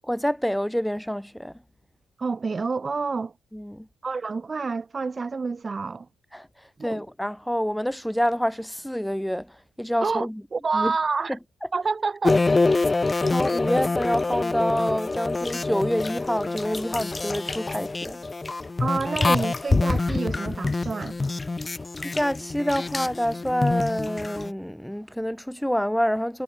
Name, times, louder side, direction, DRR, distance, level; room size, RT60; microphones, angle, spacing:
voice 1, 0.1-1.6 3.5-3.9 6.3-6.5 6.8-10.4 10.7-10.9 13.3-18.2 22.0-26.4, equal, ahead, 1.1 m, -27 dB
voice 2, 2.2-3.3 4.0-6.1 6.8-7.0 10.0-11.4 11.7-12.4 13.2-13.4 18.8-21.2, right 4 dB, 30° right, 0.9 m, -28 dB
sound 1, 12.2-24.5, left 3 dB, 25° left, 1.0 m, -26 dB
figure-of-eight pair, 45°, 0 cm